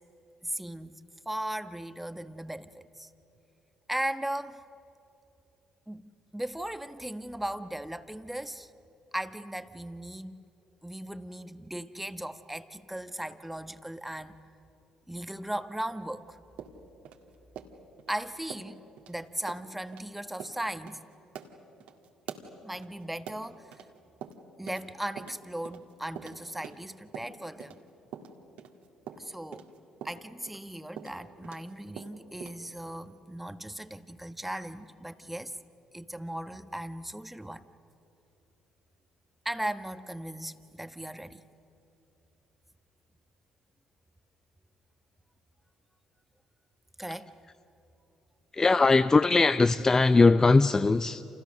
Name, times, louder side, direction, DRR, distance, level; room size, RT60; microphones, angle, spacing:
voice 1, 0.4-3.1 3.9-4.6 5.9-6.0 6.3-8.7 9.1-10.4 10.8-14.4 15.1-16.4 18.1-18.8 19.1-21.0 22.6-23.7 24.6-27.8 29.2-29.7 30.0-35.6 35.9-37.6 39.4-41.4 47.0-47.3, right 1 dB, 5° right, 1.4 m, -37 dB
sound 1, 16.6-18.1 18.5-18.7 19.0-19.1 19.5-19.6 19.9-20.1 20.4-20.6 20.9-21.0 21.3-23.9 24.2-24.9 25.2-27.8 28.1-31.7 32.0-32.6, right 8 dB, 70° right, 1.9 m, -44 dB
voice 2, 48.5-51.2, left 3 dB, 25° left, 0.6 m, -20 dB
29.5 x 28.5 x 6.6 m
hypercardioid pair, 55°, 2 cm